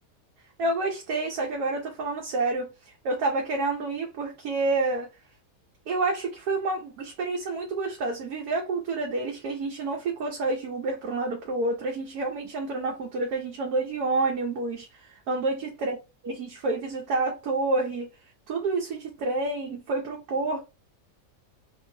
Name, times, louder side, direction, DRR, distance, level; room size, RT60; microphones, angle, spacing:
voice 1, 0.6-2.7 3.0-5.1 5.9-16.0 16.2-18.1 18.5-20.6, right 3 dB, 85° right, 1.2 m, -28 dB
2.9 x 2.5 x 2.6 m
omnidirectional pair, 1.6 m